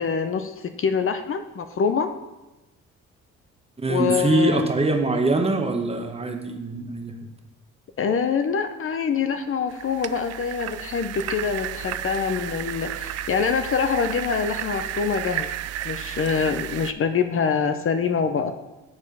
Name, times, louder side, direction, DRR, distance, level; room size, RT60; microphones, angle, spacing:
voice 1, 0.0-2.1 3.9-4.7 8.0-15.5 15.8-18.6, left 6 dB, 45° left, 8 dB, 0.6 m, -25 dB
voice 2, 3.8-7.2, right 2 dB, 20° right, 4 dB, 1.0 m, -23 dB
sound 1, 9.7-16.9, right 11 dB, 55° right, 0.4 m, -33 dB
8.6 x 4.3 x 5.5 m, 1.0 s
cardioid pair, 90°, 30 cm